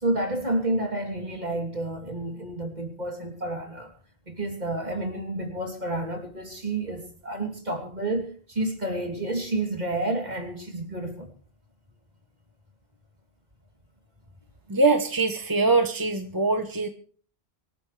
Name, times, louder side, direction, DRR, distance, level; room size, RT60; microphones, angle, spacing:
voice 1, 0.0-3.9 4.3-11.3, right 2 dB, 45° right, 3 dB, 3.4 m, -30 dB
voice 2, 14.7-16.9, right 3 dB, 20° right, 7 dB, 1.1 m, -23 dB
24.5 x 13.5 x 3.3 m, 0.43 s
omnidirectional pair, 1.1 m